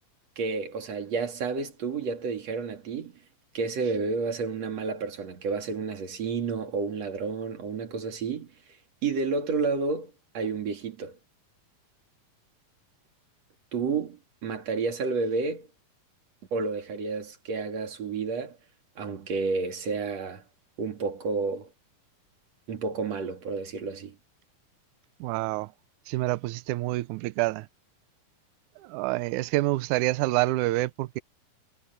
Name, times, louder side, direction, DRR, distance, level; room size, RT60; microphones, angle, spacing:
voice 1, 0.4-3.2 3.5-8.5 9.0-11.2 13.7-15.7 16.5-18.6 19.0-20.4 20.8-21.7 22.7-24.2, right 4 dB, 50° right, 3.7 m, -30 dB
voice 2, 25.2-25.7 26.1-27.7 28.8-31.2, right 19 dB, 90° right, 1.7 m, -27 dB
omnidirectional pair, 4.2 m